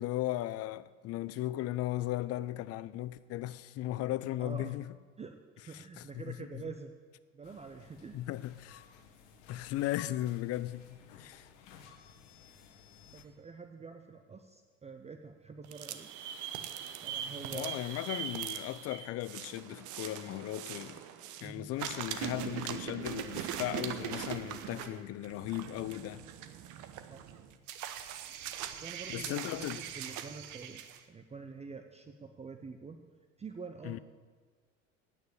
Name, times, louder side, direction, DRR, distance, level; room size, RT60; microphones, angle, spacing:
voice 1, 0.0-4.9 5.7-6.6 8.1-8.8 9.5-10.9 11.1-11.5 17.5-21.0 21.4-26.3 29.1-29.8 33.8-34.0, left 15 dB, 40° left, 0.5 m, -37 dB
voice 2, 4.4-4.7 5.2-6.9 7.3-8.2 13.1-16.1 17.0-17.8 21.4-21.7 27.1-27.2 28.8-30.8 31.1-33.0 33.4-34.0, right 5 dB, 15° right, 0.7 m, -46 dB
sound 1, 7.4-13.2, left 7 dB, 65° left, 1.4 m, -56 dB
sound 2, 15.6-21.5 21.8-31.0, right 10 dB, 50° right, 1.0 m, -41 dB
9.4 x 8.5 x 8.3 m
figure-of-eight pair, 70°, 39 cm